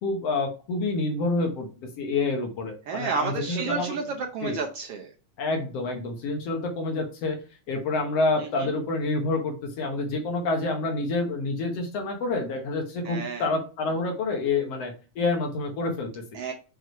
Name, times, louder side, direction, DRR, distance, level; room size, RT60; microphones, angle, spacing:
voice 1, 0.0-1.7 2.0-4.0 4.4-4.6 5.4-7.4 7.7-16.2, left 3 dB, 60° left, 3 dB, 2.1 m, -28 dB
voice 2, 2.9-5.1 8.4-8.8 13.0-13.5 16.3-16.5, right 4 dB, 70° right, 2 dB, 1.5 m, -31 dB
6.4 x 4.6 x 4.5 m, 0.35 s
omnidirectional pair, 3.4 m